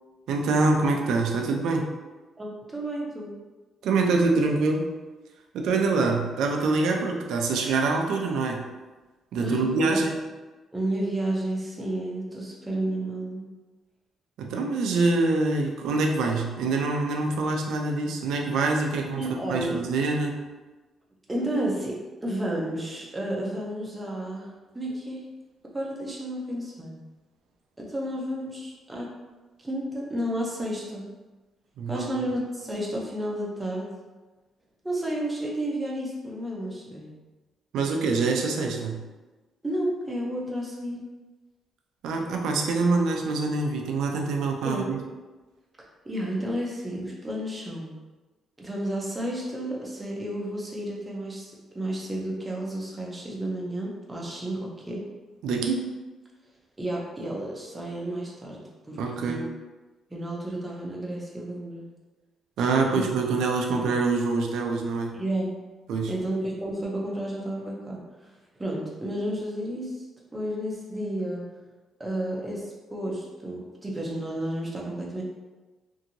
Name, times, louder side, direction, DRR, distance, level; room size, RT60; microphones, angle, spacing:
voice 1, 0.3-1.9 3.8-4.9 5.5-8.7 9.3-10.2 14.4-20.4 31.8-32.2 37.7-39.0 42.0-45.0 55.4-56.0 59.0-59.4 62.6-65.1 65.9-66.1, right 3 dB, 80° right, 2 dB, 0.4 m, -25 dB
voice 2, 2.4-3.4 9.4-10.0 10.7-13.4 19.2-19.8 21.3-25.3 25.7-27.0 27.8-29.1 29.6-31.0 31.9-33.9 34.8-37.1 39.6-41.0 44.6-44.9 46.0-47.9 48.6-55.0 56.8-59.4 60.1-61.9 62.9-63.0 65.1-65.5 66.1-68.3 68.6-70.0 70.3-71.5 72.0-75.2, right 1 dB, 10° right, -3 dB, 0.6 m, -31 dB
2.8 x 2.6 x 2.6 m, 1.2 s
cardioid pair, 160°, 0 cm